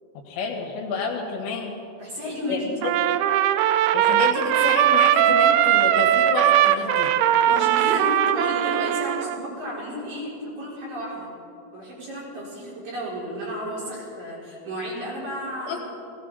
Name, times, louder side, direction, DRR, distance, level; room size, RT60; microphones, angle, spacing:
voice 1, 0.3-1.8 2.5-2.6 2.8-3.1 3.9-7.1 15.7-15.8, left 5 dB, 75° left, 0 dB, 3.9 m, -29 dB
voice 2, 2.0-2.9 7.5-11.3 11.7-15.8, equal, 50° right, -7 dB, 6.0 m, -32 dB
Trumpet, 2.8-9.4, right 11 dB, 90° right, 2.9 m, -20 dB
18.0 x 17.0 x 4.2 m, 2.6 s
omnidirectional pair, 5.1 m